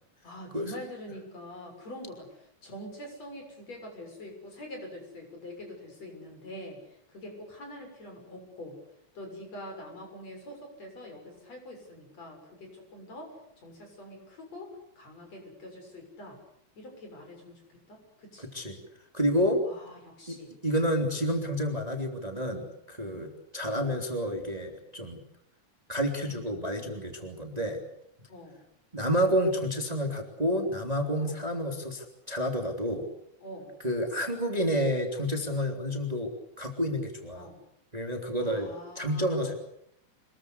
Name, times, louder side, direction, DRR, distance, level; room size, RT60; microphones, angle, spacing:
voice 1, 0.2-6.8 7.1-8.8 9.1-16.4 16.8-17.6 17.9-18.5 19.6-20.5 23.0-23.3 26.2-26.4 28.3-28.6 31.2-31.4 33.4-33.7 37.3-37.6 38.4-39.5, left 1 dB, 60° left, 3 dB, 8.1 m, -45 dB
voice 2, 18.4-18.8 19.1-19.6 20.3-20.4 20.6-23.3 23.5-25.2 25.9-27.8 28.9-33.1 33.8-36.3 36.6-37.5 37.9-39.5, equal, 15° right, 3 dB, 3.2 m, -29 dB
27.0 x 22.0 x 8.3 m, 0.75 s
omnidirectional pair, 3.4 m